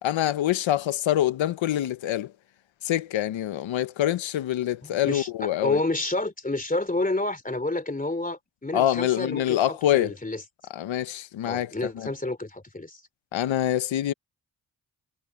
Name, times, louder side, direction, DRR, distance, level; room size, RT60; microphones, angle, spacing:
voice 1, 0.0-2.3 2.8-5.8 8.7-10.1 10.7-11.7 12.0-12.1 13.3-14.1, left 12 dB, 85° left, 1.1 m, -25 dB
voice 2, 4.8-10.4 11.5-13.0, left 2 dB, 20° left, 3.0 m, -29 dB
cardioid pair, 60°, 45 cm